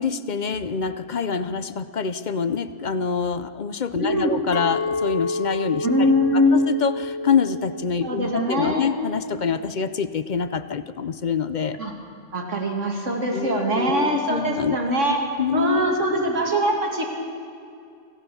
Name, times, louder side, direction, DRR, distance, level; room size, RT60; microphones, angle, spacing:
voice 1, 0.0-6.1 6.3-11.8 13.3-15.8, left 6 dB, 45° left, 12 dB, 0.7 m, -26 dB
voice 2, 4.0-4.3 5.8-6.8 8.0-8.9 11.8-11.9 12.3-15.2 15.5-17.0, equal, 80° right, 2 dB, 2.7 m, -22 dB
Chink clink, 4.5-8.9 9.2-9.6, left 3 dB, 75° left, 1.5 m, -30 dB
25.0 x 15.5 x 7.0 m, 2.5 s
omnidirectional pair, 1.3 m